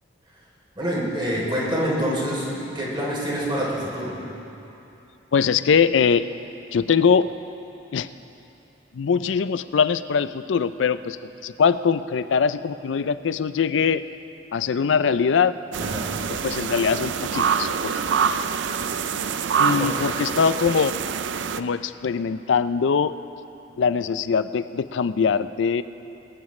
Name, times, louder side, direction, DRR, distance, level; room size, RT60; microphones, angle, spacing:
voice 1, 0.7-4.4 15.8-16.1 19.8-20.1, equal, 25° right, -5 dB, 3.2 m, -26 dB
voice 2, 5.3-6.2 6.7-7.3 7.9-8.1 8.9-14.0 14.5-15.5 16.4-18.0 19.6-20.9 21.6-23.1 23.8-25.8, left 6 dB, 80° left, 14 dB, 0.4 m, -22 dB
sound 1, 15.7-21.6, right 6 dB, 75° right, 0.4 m, -25 dB
21.0 x 14.5 x 3.2 m, 2.9 s
head